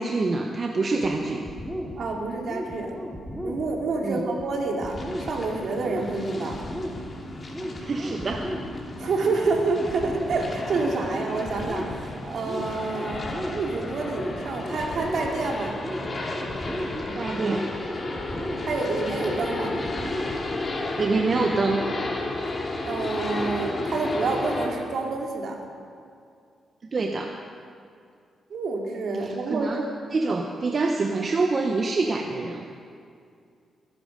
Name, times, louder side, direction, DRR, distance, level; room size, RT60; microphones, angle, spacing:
voice 1, 0.0-1.4 4.0-4.2 7.8-8.6 16.9-17.7 21.0-21.8 26.8-27.4 29.2-29.8 30.1-32.7, right 3 dB, 45° right, 3 dB, 1.0 m, -26 dB
sound 1, 0.8-20.8, equal, ahead, 3.4 m, -36 dB
voice 2, 2.0-2.9 3.4-6.6 9.0-15.8 18.6-19.8 22.8-25.6 28.5-29.7, right 3 dB, 65° right, 1 dB, 2.6 m, -28 dB
sound 2, 4.8-24.7, left 2 dB, 35° left, 2.9 m, -33 dB
22.0 x 11.0 x 5.2 m, 2.3 s
cardioid pair, 80°, 0 cm